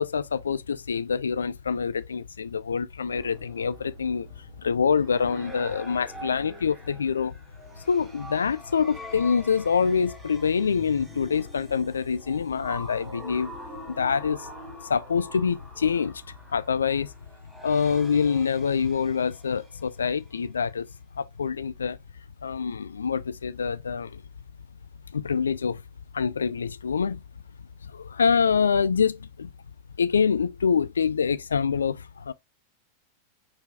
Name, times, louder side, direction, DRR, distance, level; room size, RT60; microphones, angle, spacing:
voice 1, 0.0-4.3 4.6-7.3 7.8-13.5 13.9-14.5 14.8-16.2 16.5-17.1 17.6-20.9 21.2-22.0 22.4-24.2 25.1-25.8 26.1-27.2 27.8-29.5 30.0-32.3, left 6 dB, 70° left, 0.4 m, -25 dB
sound 1, 3.1-20.4, equal, 5° right, 2.6 m, -45 dB
4.9 x 4.4 x 2.3 m
figure-of-eight pair, 90°, 0 cm